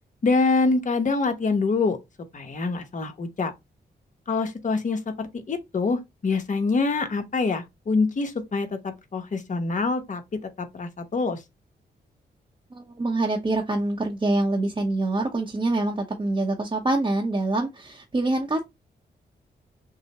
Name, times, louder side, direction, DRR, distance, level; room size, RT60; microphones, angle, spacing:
voice 1, 0.2-2.0 2.3-3.5 4.3-10.2 10.6-11.4, left 3 dB, 45° left, 1.0 m, -25 dB
voice 2, 12.7-18.7, right 2 dB, 30° right, 0.9 m, -25 dB
6.4 x 2.1 x 2.9 m
cardioid pair, 95°, 18 cm